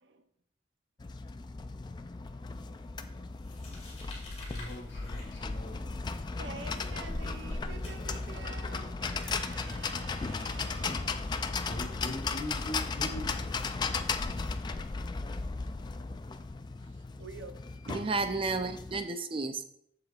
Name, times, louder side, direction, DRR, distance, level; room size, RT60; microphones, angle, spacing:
sound 1, 1.0-19.0, left 4 dB, 25° left, 0.3 m, -36 dB
sound 2, 3.4-8.6, left 1 dB, 40° left, 2.5 m, -45 dB
voice 1, 4.5-5.9 11.7-13.5, left 1 dB, 70° left, -4 dB, 1.6 m, -41 dB
voice 2, 6.4-11.2 16.8-18.1, right 4 dB, 85° right, 8 dB, 0.6 m, -48 dB
voice 3, 17.9-19.7, right 3 dB, 30° right, 8 dB, 0.5 m, -32 dB
7.8 x 6.9 x 2.4 m, 0.69 s
head